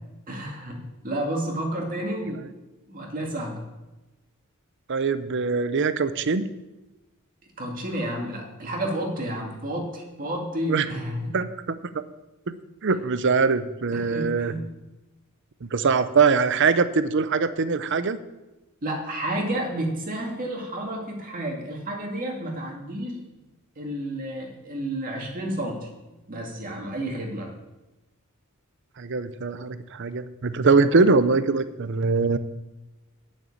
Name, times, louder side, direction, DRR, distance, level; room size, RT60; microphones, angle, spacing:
voice 1, 0.3-2.4 2.9-3.6 7.6-11.3 13.9-14.6 18.8-23.2 23.8-25.9 26.3-27.6, right 1 dB, 40° right, 0 dB, 2.1 m, -31 dB
voice 2, 4.9-6.5 10.7-10.9 11.3-11.8 12.5-12.6 12.8-14.5 15.6-18.2 29.0-32.4, right 4 dB, 55° right, 12 dB, 0.7 m, -22 dB
9.3 x 6.7 x 8.4 m, 1.0 s
head